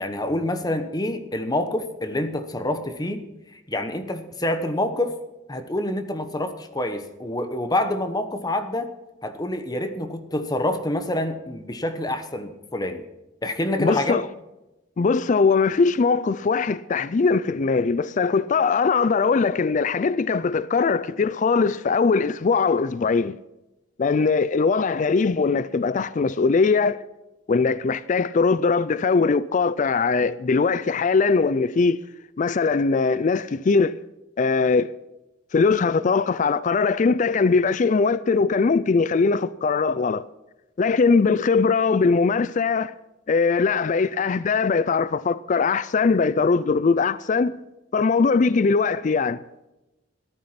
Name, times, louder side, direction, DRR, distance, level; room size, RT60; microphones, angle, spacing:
voice 1, 0.0-3.3 3.5-5.2 5.5-8.9 9.2-13.0 13.4-14.2, left 1 dB, 20° left, 1.1 m, -27 dB
voice 2, 13.8-14.3 15.0-23.4 24.0-27.0 27.5-32.0 32.4-33.9 34.4-34.9 35.5-40.3 40.8-42.9 43.3-47.6 47.9-49.4, left 4 dB, 40° left, 0.4 m, -21 dB
14.0 x 12.0 x 5.8 m
head